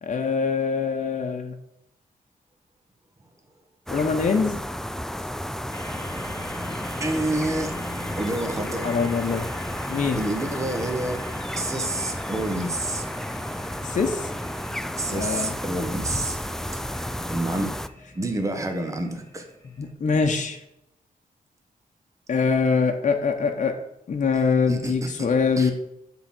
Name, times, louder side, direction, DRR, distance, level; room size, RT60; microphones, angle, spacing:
voice 1, 0.0-1.6 3.9-4.6 8.8-9.5 9.9-10.2 13.8-14.3 15.1-15.5 19.8-20.6 22.3-23.8 24.1-25.7, left 5 dB, 55° left, 3 dB, 1.0 m, -23 dB
sound 1, 3.9-17.9, equal, 5° left, 0.4 m, -32 dB
sound 2, 5.7-19.9, left 1 dB, 20° left, 1.6 m, -41 dB
voice 2, 7.0-7.8 8.2-8.9 10.2-11.3 11.5-13.1 15.0-16.5 17.3-17.8 18.1-19.5 24.7-25.3 25.6-25.7, right 2 dB, 20° right, 4 dB, 1.1 m, -28 dB
8.0 x 3.8 x 6.1 m, 0.82 s
cardioid pair, 90°, 15 cm